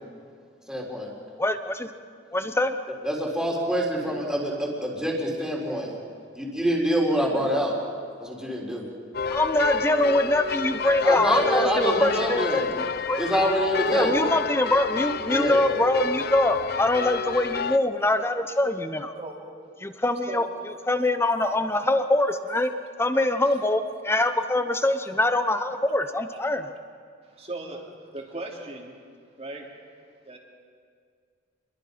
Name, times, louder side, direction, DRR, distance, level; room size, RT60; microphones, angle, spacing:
voice 1, 0.7-1.1 3.0-5.9 6.3-7.8 8.2-8.9 11.0-12.7 13.2-14.1 15.3-15.6, equal, 5° right, -2 dB, 3.8 m, -26 dB
voice 2, 1.4-1.9 2.3-2.7 9.3-13.2 13.9-19.1 19.8-20.4 20.9-22.7 23.0-26.7, left 1 dB, 15° left, 9 dB, 1.0 m, -23 dB
sound 1, 9.1-17.8, left 5 dB, 55° left, 0.6 m, -29 dB
voice 3, 22.3-22.6 23.5-23.6 27.2-27.8 28.1-29.0 29.4-29.7 30.2-30.4, right 2 dB, 35° right, 0 dB, 3.2 m, -38 dB
28.0 x 22.5 x 5.2 m, 2.2 s
head